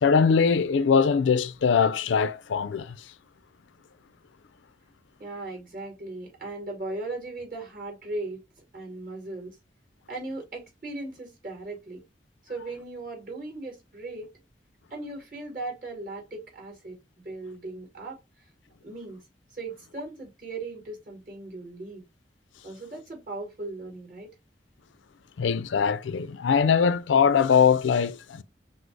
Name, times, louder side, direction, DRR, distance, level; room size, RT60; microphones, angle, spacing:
voice 1, 0.0-3.1 25.4-28.4, left 6 dB, 90° left, 0.4 m, -22 dB
voice 2, 5.2-8.4 8.7-9.6 10.1-12.0 12.4-14.3 14.9-18.2 18.8-19.2 19.5-22.0 22.6-24.3, right 2 dB, 45° right, 2.2 m, -38 dB
6.0 x 2.0 x 3.2 m
head